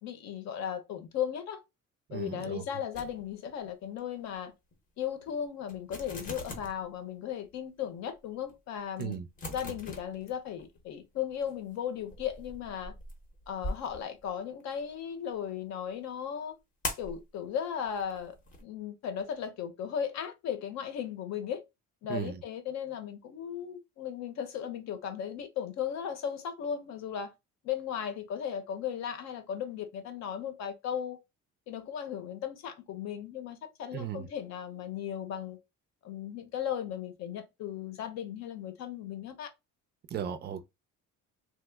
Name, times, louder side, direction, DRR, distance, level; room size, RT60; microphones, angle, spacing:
voice 1, 0.0-1.6 2.1-4.5 5.0-9.2 9.5-12.9 13.5-16.6 17.0-18.3 18.6-21.6 22.0-27.3 27.6-31.2 31.7-35.6 36.0-39.5, left 9 dB, 60° left, 0.8 m, -36 dB
voice 2, 2.1-2.6 9.0-9.3 22.1-22.4 33.9-34.3 40.1-40.7, right 9 dB, 35° right, 0.4 m, -36 dB
sound 1, 2.9-3.7 4.0-4.2 4.7-4.8 5.3-5.4 5.7-6.9 7.4-7.5 8.1-8.2 8.4-8.5 9.0-10.8 11.2-14.8 16.8-17.2 17.8-18.6, left 1 dB, 25° left, 0.7 m, -41 dB
2.9 x 2.0 x 3.3 m
cardioid pair, 160°, 31 cm